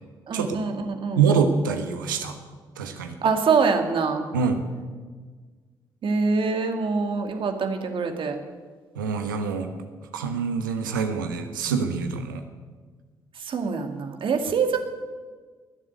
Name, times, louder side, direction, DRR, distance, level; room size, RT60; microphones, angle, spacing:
voice 1, 0.3-1.2 3.2-4.3 6.0-8.4 13.4-14.8, right 5 dB, 55° right, 5 dB, 2.3 m, -24 dB
voice 2, 1.1-2.4 2.8-3.2 4.3-4.6 9.0-9.7 10.1-12.4, right 6 dB, 90° right, 6 dB, 1.3 m, -25 dB
19.5 x 7.3 x 9.4 m, 1.5 s
hypercardioid pair, 45°, 11 cm